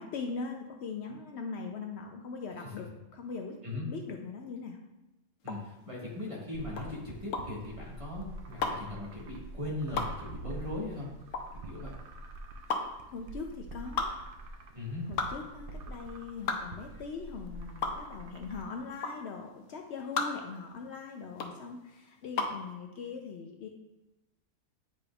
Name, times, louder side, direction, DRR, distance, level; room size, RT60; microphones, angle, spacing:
voice 1, 0.0-4.8 13.1-14.1 15.1-23.7, left 4 dB, 65° left, 3 dB, 0.8 m, -41 dB
sound 1, 5.4-22.7, left 4 dB, 80° left, 1.1 m, -36 dB
voice 2, 5.4-11.1 11.6-12.0 14.7-15.1, left 2 dB, 25° right, -5 dB, 1.5 m, -39 dB
sound 2, 6.5-18.6, right 2 dB, 60° right, 0.6 m, -46 dB
9.0 x 5.1 x 2.3 m, 0.99 s
omnidirectional pair, 1.3 m